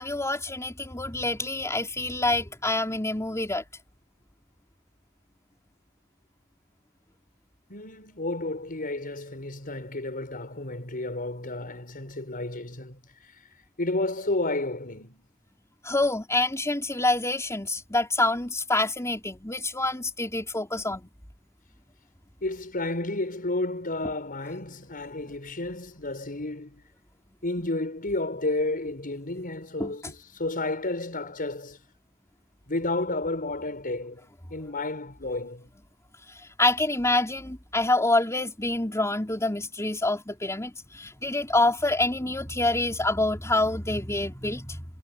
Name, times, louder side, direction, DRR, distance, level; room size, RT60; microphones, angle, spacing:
voice 1, 0.0-3.6 15.8-21.1 29.8-29.9 36.6-44.8, left 2 dB, 15° left, 4.9 m, -26 dB
voice 2, 7.7-13.0 13.8-15.2 22.4-26.8 27.4-31.8 32.7-34.2 34.5-35.7, left 2 dB, 40° left, 5.9 m, -31 dB
head